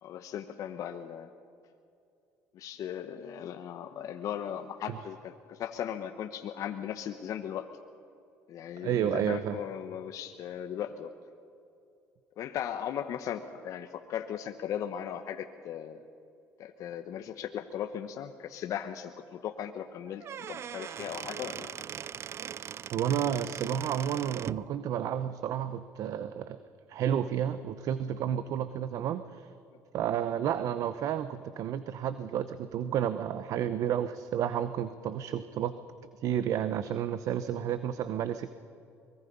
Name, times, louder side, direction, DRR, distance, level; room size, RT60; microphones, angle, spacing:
voice 1, 0.0-1.3 2.5-7.7 8.5-11.1 12.4-16.0 16.6-21.8, left 9 dB, 65° left, 6 dB, 1.1 m, -37 dB
voice 2, 8.8-9.6 22.9-26.6 26.9-29.5 29.9-35.7 36.2-38.5, right 9 dB, 65° right, 12 dB, 0.9 m, -31 dB
Squeak / Wood, 20.1-24.7, right 9 dB, 45° right, 0.5 m, -40 dB
23.5 x 21.5 x 5.5 m, 2.5 s
supercardioid pair, 90°, 6 cm